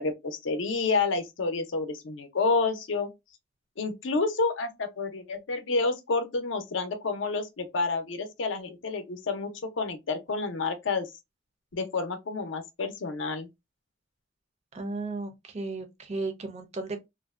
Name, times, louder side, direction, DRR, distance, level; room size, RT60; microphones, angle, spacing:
voice 1, 0.0-3.1 3.8-9.5 9.8-11.1 11.7-13.5, left 3 dB, 70° left, 0.5 m, -29 dB
voice 2, 14.7-17.1, right 3 dB, 35° right, 0.5 m, -35 dB
2.5 x 2.1 x 2.3 m
head